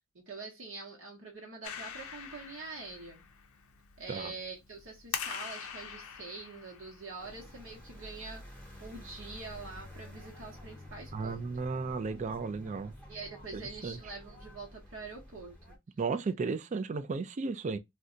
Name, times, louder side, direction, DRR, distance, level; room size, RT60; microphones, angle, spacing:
voice 1, 0.1-3.2 4.0-8.4 8.8-11.5 13.1-15.8, right 3 dB, 60° right, 0.9 m, -45 dB
Clapping, 1.6-8.3, left 7 dB, 85° left, 0.5 m, -44 dB
sound 1, 7.2-15.8, left 1 dB, 5° left, 0.9 m, -50 dB
voice 2, 11.1-12.9 13.5-14.0 16.0-17.8, right 4 dB, 35° right, 0.3 m, -34 dB
2.6 x 2.2 x 3.7 m
head